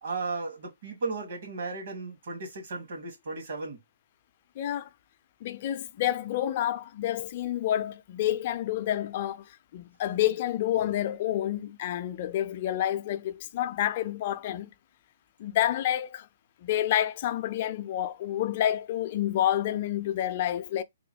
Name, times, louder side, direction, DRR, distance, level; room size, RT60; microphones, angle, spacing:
voice 1, 0.0-3.8, right 3 dB, 60° right, 2.1 m, -35 dB
voice 2, 4.6-4.9 5.4-14.7 15.4-16.3 16.6-20.8, left 12 dB, 45° left, 0.4 m, -29 dB
3.7 x 2.1 x 3.2 m
hypercardioid pair, 145°, 0 cm